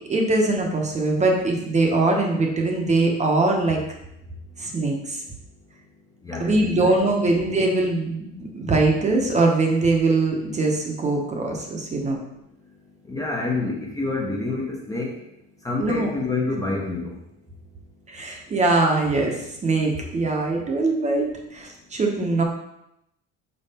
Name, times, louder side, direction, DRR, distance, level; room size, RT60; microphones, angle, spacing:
voice 1, 0.0-3.8 4.6-5.2 6.4-12.2 15.8-16.1 18.1-22.4, right 2 dB, 25° right, 1 dB, 0.9 m, -22 dB
voice 2, 6.2-6.9 13.0-15.2 15.6-17.2, left 3 dB, 10° left, -2 dB, 0.7 m, -28 dB
5.5 x 4.6 x 4.2 m, 0.83 s
cardioid pair, 155°, 29 cm